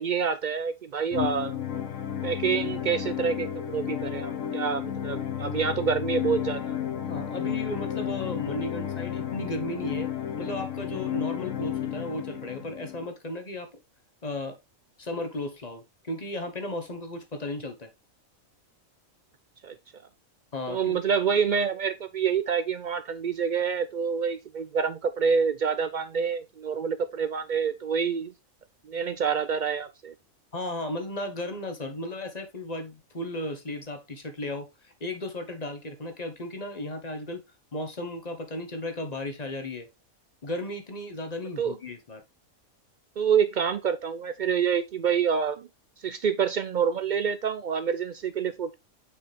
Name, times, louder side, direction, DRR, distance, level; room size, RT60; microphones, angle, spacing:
voice 1, 0.0-1.6 2.2-6.8 19.6-19.8 20.7-28.3 28.8-30.1 41.6-41.8 43.2-45.7 46.0-48.7, right 6 dB, 65° right, 0.4 m, -27 dB
sound 1, 1.1-13.1, left 10 dB, 70° left, 1.2 m, -32 dB
voice 2, 7.0-10.1 10.4-13.7 14.2-14.6 15.0-17.9 20.5-21.0 30.5-37.4 37.7-39.9 40.4-42.2, left 1 dB, 35° left, 1.1 m, -35 dB
6.3 x 4.9 x 3.3 m
omnidirectional pair, 1.4 m